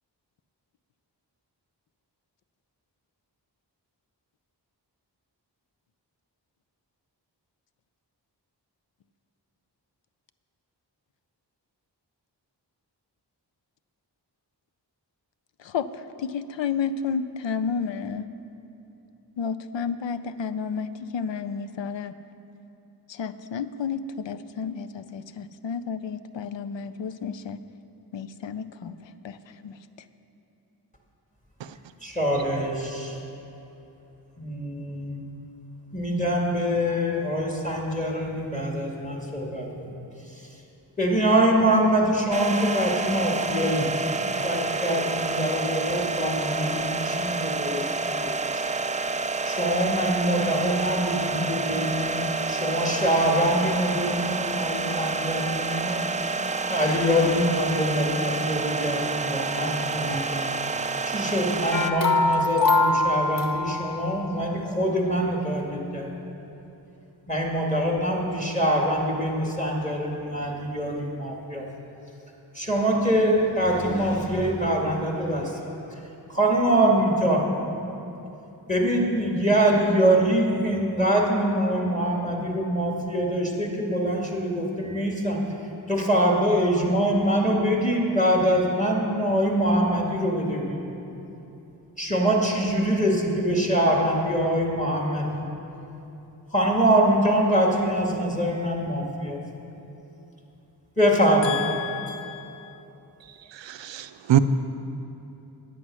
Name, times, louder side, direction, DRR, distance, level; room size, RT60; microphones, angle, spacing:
voice 1, 16.2-18.2 19.4-22.1 23.1-27.6 28.1-29.0 29.2-29.4 29.6-29.8 101.4-102.8, left 6 dB, 80° left, 11 dB, 0.5 m, -31 dB
voice 2, 32.0-33.2 34.4-35.2 35.9-39.9 41.0-43.9 44.4-48.6 49.4-56.3 56.7-60.5 61.1-66.1 67.3-71.7 72.5-75.6 76.3-77.4 78.7-85.4 85.9-90.9 92.0-95.4 96.5-99.4 101.0-101.6 102.1-102.2, equal, 15° left, -2 dB, 2.1 m, -24 dB
sound 1, 42.3-61.9, right 3 dB, 20° right, 0.3 m, -29 dB
sound 2, 61.7-64.2, left 2 dB, 50° left, 0.8 m, -23 dB
voice 3, 103.5-104.4, right 12 dB, 80° right, 11 dB, 0.5 m, -23 dB
9.7 x 8.5 x 6.2 m, 3.0 s
cardioid pair, 45°, 43 cm